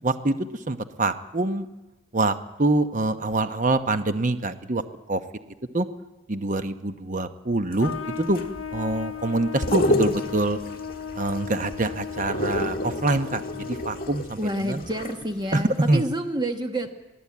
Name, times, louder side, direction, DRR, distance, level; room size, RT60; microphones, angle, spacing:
voice 1, 0.0-1.7 2.1-4.8 5.1-5.2 5.7-5.9 6.3-8.4 8.7-10.6 11.1-14.8 15.5-15.6 15.9-16.0, right 2 dB, 40° right, 9 dB, 0.9 m, -25 dB
sound 1, 7.7-15.7 16.0-16.1, left 1 dB, 45° left, 1.8 m, -30 dB
Trumpet, 7.8-14.3, left 7 dB, 85° left, 0.7 m, -36 dB
voice 2, 14.4-16.9, right 1 dB, 20° right, 6 dB, 1.2 m, -28 dB
22.5 x 15.5 x 8.5 m, 1.1 s
head